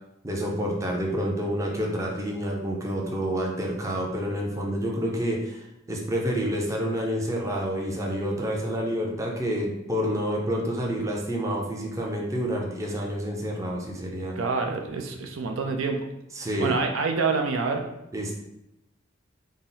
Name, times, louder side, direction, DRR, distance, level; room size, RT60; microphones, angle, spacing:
voice 1, 0.2-14.4 16.3-16.8 18.1-18.3, equal, 15° right, -1 dB, 0.5 m, -28 dB
voice 2, 14.4-16.0 16.6-17.8, right 4 dB, 75° right, 3 dB, 0.5 m, -27 dB
4.0 x 2.0 x 3.8 m, 0.88 s
head